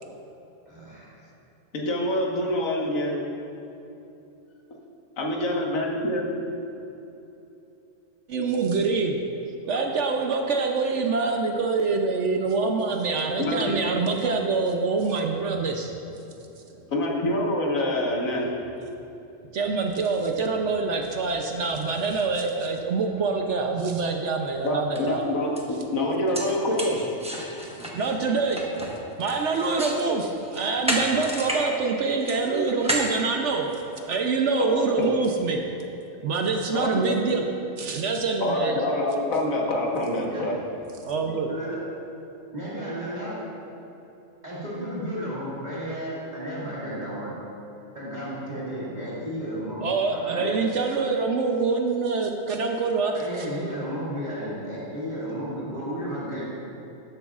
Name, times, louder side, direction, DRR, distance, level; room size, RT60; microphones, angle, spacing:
voice 1, 0.7-1.2 40.1-40.4 41.5-41.8 42.5-43.4 44.4-47.3 47.9-49.8 50.1-50.6 53.1-56.5, equal, 35° right, -10 dB, 2.1 m, -33 dB
voice 2, 1.7-3.2 5.2-6.4 13.4-13.6 16.9-18.5 24.6-27.0 34.6-35.1 36.7-37.1 38.4-40.6, left 1 dB, 90° left, -2 dB, 1.7 m, -26 dB
voice 3, 8.3-9.2 9.6-15.9 19.5-25.3 27.8-28.6 29.2-35.6 36.2-37.4 37.8-38.8 41.0-41.5 49.8-53.5, right 4 dB, 65° right, 2 dB, 0.9 m, -25 dB
sound 1, 24.5-24.6 24.9-25.1 25.6-25.7 26.1-30.0 30.4-31.6 31.9-34.0, right 1 dB, 5° right, 0.9 m, -31 dB
13.0 x 10.0 x 2.4 m, 2.9 s
omnidirectional pair, 1.4 m